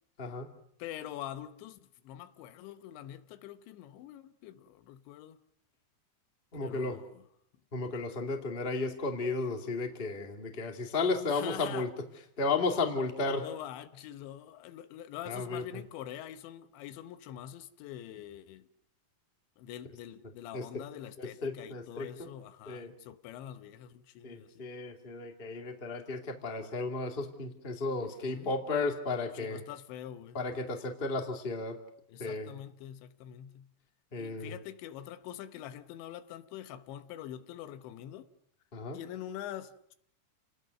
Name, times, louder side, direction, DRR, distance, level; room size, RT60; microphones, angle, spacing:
voice 1, 0.2-0.5 6.5-7.0 7.7-11.9 12.4-13.4 15.2-15.8 20.5-20.7 21.2-22.3 22.6-22.9 24.2-29.6 30.3-31.8 32.2-32.5 34.1-34.5 38.7-39.0, left 3 dB, 20° left, 1.4 m, -34 dB
voice 2, 0.8-5.4 6.6-7.2 11.3-11.9 13.4-18.7 19.6-24.7 28.0-28.5 29.4-30.4 32.1-33.7 34.2-38.3 38.9-40.0, left 11 dB, 90° left, 3.4 m, -45 dB
29.5 x 19.5 x 6.6 m
omnidirectional pair, 5.1 m